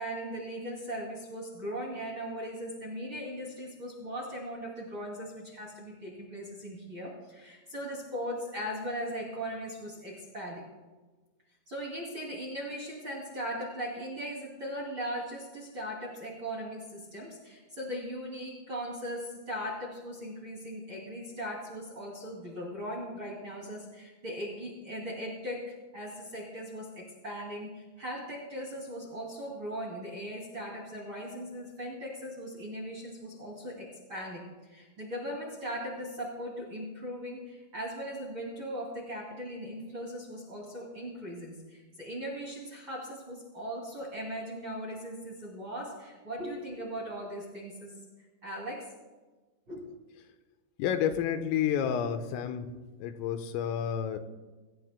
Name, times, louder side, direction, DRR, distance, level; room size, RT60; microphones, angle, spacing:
voice 1, 0.0-10.6 11.7-48.0 48.4-48.9 49.7-49.9, equal, 30° right, -3 dB, 2.5 m, -39 dB
voice 2, 50.8-52.7 53.0-54.2, left 8 dB, 90° left, 8 dB, 3.6 m, -30 dB
24.5 x 17.5 x 2.3 m, 1.3 s
omnidirectional pair, 5.8 m